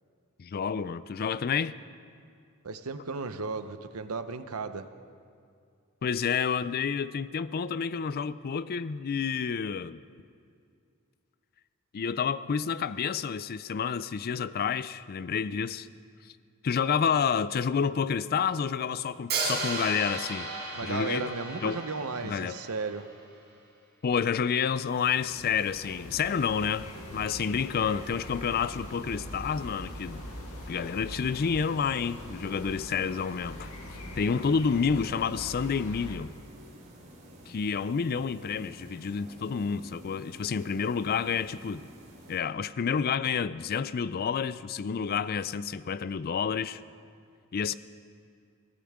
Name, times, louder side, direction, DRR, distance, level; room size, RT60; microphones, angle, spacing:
voice 1, 0.4-1.7 6.0-10.0 11.9-15.9 16.6-20.5 20.8-21.3 21.6-21.8 22.2-22.6 24.0-30.2 30.7-33.7 34.2-36.3 37.5-41.9 42.3-46.8 47.5-47.7, left 6 dB, 45° left, 0.4 m, -29 dB
voice 2, 2.6-4.9 20.7-23.1, right 4 dB, 85° right, 0.8 m, -35 dB
Hi-hat, 19.3-23.3, right 3 dB, 50° right, 4.4 m, -35 dB
sound 1, 24.9-42.4, right 1 dB, 35° right, 4.1 m, -52 dB
sound 2, 25.2-36.2, left 1 dB, 85° left, 1.8 m, -43 dB
23.5 x 15.5 x 3.6 m
head